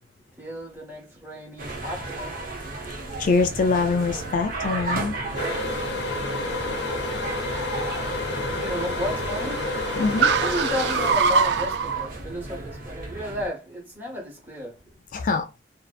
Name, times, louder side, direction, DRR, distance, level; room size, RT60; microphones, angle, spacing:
voice 1, 0.4-2.8 8.5-9.6 10.4-14.8, left 1 dB, 10° right, 1.0 m, -33 dB
sound 1, 1.6-13.5, right 2 dB, 50° right, 0.8 m, -35 dB
voice 2, 2.8-5.2 10.0-10.3 15.1-15.5, left 4 dB, 45° left, 0.3 m, -24 dB
Car, 3.2-12.1, right 5 dB, 70° right, 0.3 m, -28 dB
sound 2, 5.4-11.1, left 3 dB, 75° left, 0.7 m, -30 dB
2.6 x 2.1 x 2.4 m
head